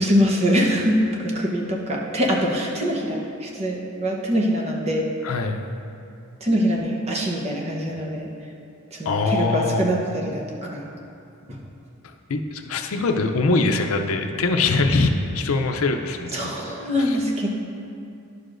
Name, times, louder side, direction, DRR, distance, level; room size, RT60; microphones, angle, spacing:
voice 1, 0.0-5.1 6.4-8.3 8.9-10.9 11.5-11.6 16.3-17.5, equal, 30° right, -2 dB, 0.9 m, -23 dB
voice 2, 5.2-5.6 9.1-9.9 12.3-16.5 17.1-17.2, left 3 dB, 80° left, 5 dB, 0.6 m, -22 dB
11.0 x 6.5 x 2.6 m, 2.6 s
head